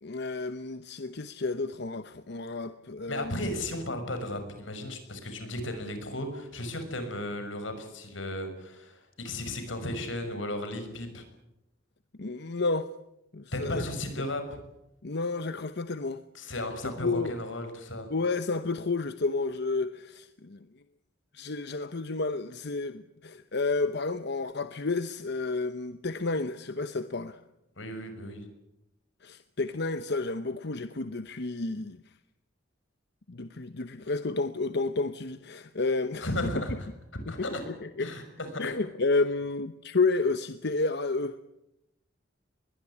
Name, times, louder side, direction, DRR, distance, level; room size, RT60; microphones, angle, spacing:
voice 1, 0.0-3.5 12.2-12.9 13.3-13.9 15.0-16.2 16.8-17.3 18.1-20.7 21.3-27.4 29.2-32.0 33.3-36.5 37.3-38.1 38.6-41.4, left 3 dB, 60° left, 0.9 m, -31 dB
voice 2, 3.1-11.2 13.5-14.6 16.3-18.1 27.8-28.4 36.2-36.9 37.3-37.6 38.0-38.8, left 1 dB, 90° left, 6.2 m, -35 dB
21.5 x 19.0 x 9.9 m
head